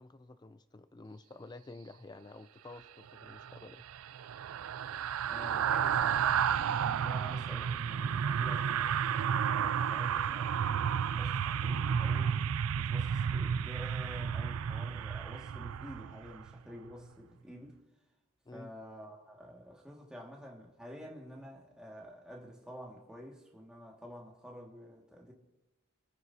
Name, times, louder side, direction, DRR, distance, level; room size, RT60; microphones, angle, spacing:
voice 1, 0.0-3.8 18.5-18.7, left 2 dB, 20° left, 0.4 m, -50 dB
sound 1, 3.2-16.5 16.9-17.1, right 8 dB, 85° right, 0.4 m, -32 dB
voice 2, 5.2-12.4 12.7-17.8 18.5-25.3, equal, 5° right, 2.0 m, -49 dB
28.5 x 9.5 x 2.8 m
head